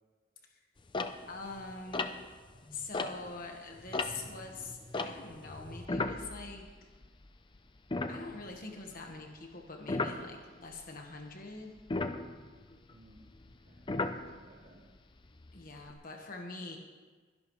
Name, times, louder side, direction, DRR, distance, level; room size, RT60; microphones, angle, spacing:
sound 1, 0.9-3.5 3.8-7.3 7.6-7.7 7.9-8.8 9.9-10.2 11.8-14.7 15.3-15.9, left 3 dB, 25° left, 0.6 m, -36 dB
voice 1, 1.3-2.2 2.7-6.7 8.1-11.7 15.5-16.8, left 3 dB, 50° left, 2 dB, 1.3 m, -44 dB
voice 2, 12.9-14.9, right 1 dB, 55° right, -5 dB, 4.0 m, -60 dB
22.5 x 11.0 x 3.1 m, 1.4 s
head